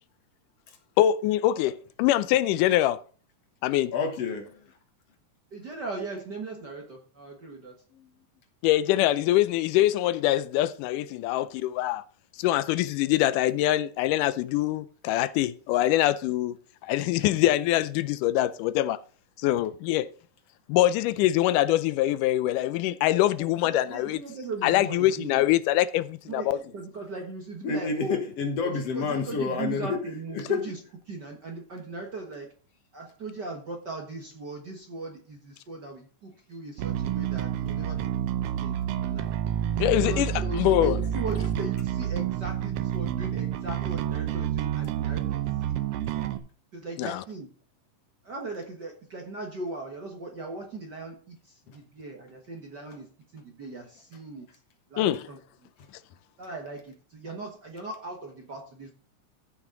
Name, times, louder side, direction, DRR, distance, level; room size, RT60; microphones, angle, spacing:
voice 1, 1.0-3.0 3.6-3.9 8.6-12.0 12.4-16.6 16.8-19.0 19.4-20.1 20.7-24.2 24.6-26.6 39.8-41.0 47.0-47.2 55.0-55.2, left 14 dB, 85° left, 2.1 m, -24 dB
voice 2, 3.9-4.7 7.9-8.1 27.6-30.0 30.3-30.6 51.7-51.8, left 5 dB, 60° left, 2.1 m, -29 dB
voice 3, 5.5-7.8 23.4-25.4 26.3-28.2 28.6-30.8 31.1-32.5 32.9-38.1 38.6-39.3 39.9-45.9 46.7-47.5 48.2-54.5 54.9-55.4 56.4-58.9, right 3 dB, 45° right, 1.4 m, -38 dB
Bass guitar, 36.8-46.4, right 10 dB, 85° right, 1.3 m, -29 dB
14.5 x 6.2 x 3.8 m
omnidirectional pair, 3.7 m